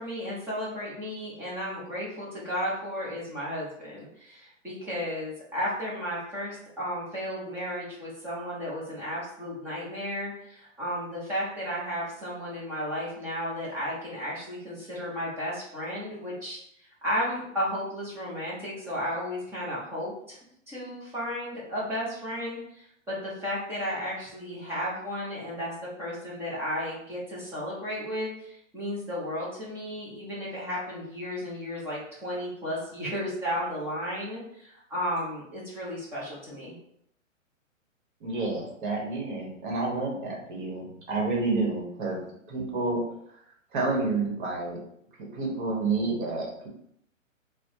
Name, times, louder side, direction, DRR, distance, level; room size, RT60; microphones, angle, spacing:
voice 1, 0.0-20.4 20.7-36.7, equal, 5° right, -8 dB, 0.5 m, -34 dB
voice 2, 38.2-42.2 42.5-43.0 43.7-44.8 45.2-46.7, right 3 dB, 40° right, -1 dB, 1.1 m, -29 dB
4.2 x 2.1 x 2.7 m, 0.71 s
figure-of-eight pair, 130°, 40 cm